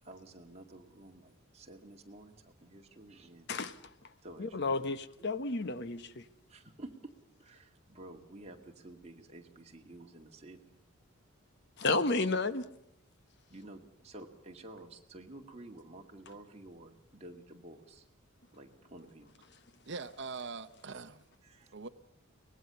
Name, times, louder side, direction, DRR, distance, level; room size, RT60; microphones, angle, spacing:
voice 1, 0.0-3.5 4.2-5.0 6.5-7.1 7.4-10.8 13.5-18.1 18.5-19.4 21.4-21.7, right 1 dB, 30° right, 3 dB, 2.1 m, -51 dB
voice 2, 4.4-6.2 11.8-12.7, left 3 dB, 55° left, 13 dB, 1.0 m, -32 dB
voice 3, 19.9-21.2 21.7-21.9, right 4 dB, 55° right, 11 dB, 0.8 m, -42 dB
24.0 x 20.0 x 6.9 m, 0.73 s
head